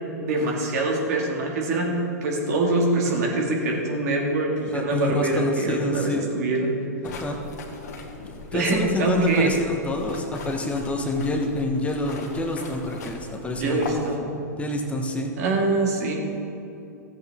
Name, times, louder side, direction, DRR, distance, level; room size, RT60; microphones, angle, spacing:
voice 1, 0.2-2.0 2.2-6.8 8.5-9.5 13.6-14.3 15.4-16.1, right 2 dB, 65° right, -1 dB, 2.2 m, -24 dB
voice 2, 4.7-6.2 7.0-7.4 8.5-14.0 14.6-15.3, left 2 dB, 15° left, 2 dB, 1.1 m, -27 dB
sound 1, 7.0-14.2, left 3 dB, 70° left, 1.6 m, -39 dB
14.5 x 8.1 x 3.7 m, 2.8 s
hypercardioid pair, 105°, 9 cm